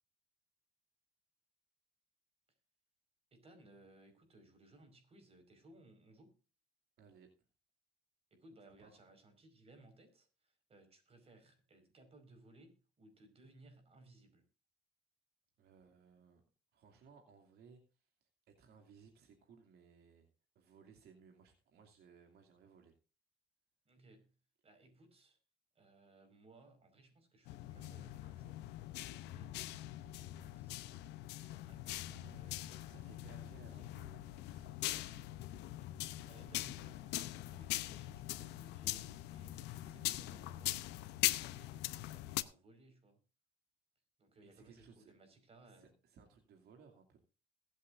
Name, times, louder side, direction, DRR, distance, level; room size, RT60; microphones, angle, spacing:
voice 1, 3.3-6.3 8.3-14.4 23.8-24.3 24.6-25.4 25.7-28.6 29.0-31.0 31.4-33.9 36.1-40.9 41.3-43.2 44.2-45.9, right 2 dB, 35° right, 7 dB, 5.0 m, -62 dB
voice 2, 7.0-7.3 8.8-9.0 15.6-16.4 16.7-20.3 20.5-22.9 32.9-35.3 44.4-45.1 45.6-47.2, right 5 dB, 70° right, 3 dB, 2.6 m, -62 dB
sound 1, 27.5-42.4, left 16 dB, 90° left, 0.8 m, -42 dB
22.0 x 8.3 x 2.6 m, 0.33 s
cardioid pair, 110°, 17 cm